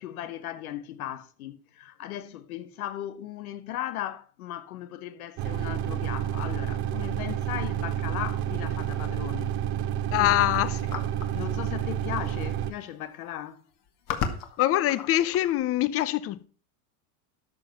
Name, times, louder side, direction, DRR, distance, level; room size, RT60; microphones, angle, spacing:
voice 1, 0.0-9.6 10.2-10.6 11.3-13.6, left 12 dB, 85° left, 1.2 m, -37 dB
sound 1, 5.4-12.7, right 10 dB, 45° right, 0.9 m, -30 dB
voice 2, 10.1-10.8 14.6-16.5, left 14 dB, 35° left, 0.7 m, -24 dB
sound 2, 10.9-11.3 12.4-12.5 12.8-13.1 13.7-15.6, left 7 dB, 50° left, 1.7 m, -34 dB
12.5 x 5.5 x 5.7 m
supercardioid pair, 125°, 42 cm